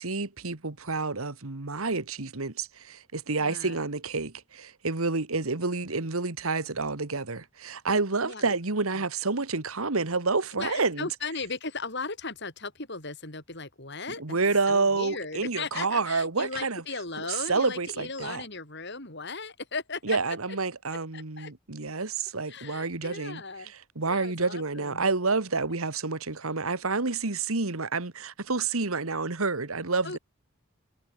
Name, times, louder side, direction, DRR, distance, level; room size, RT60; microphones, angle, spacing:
voice 1, 0.0-11.1 14.2-16.8 17.2-18.4 20.0-23.4 24.0-30.2, right 3 dB, 85° right, 1.8 m, -29 dB
voice 2, 3.3-3.8 8.2-8.6 8.9-9.0 10.5-14.4 14.7-20.4 20.9-21.5 22.5-23.7 24.0-25.0 30.0-30.2, left 4 dB, 55° left, 7.5 m, -37 dB
head